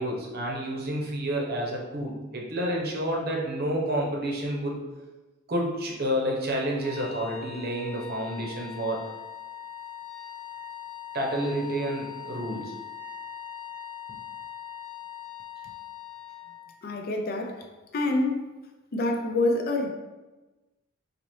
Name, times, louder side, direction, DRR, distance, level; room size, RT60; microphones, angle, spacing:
voice 1, 0.0-4.8 5.5-9.0 11.1-12.7, right 1 dB, 45° right, -1 dB, 0.8 m, -29 dB
sound 1, 6.8-16.8, left 9 dB, 10° left, 1.1 m, -41 dB
voice 2, 16.8-18.5 18.9-19.9, left 2 dB, 45° left, 3 dB, 0.4 m, -27 dB
4.1 x 2.7 x 3.1 m, 1.1 s
head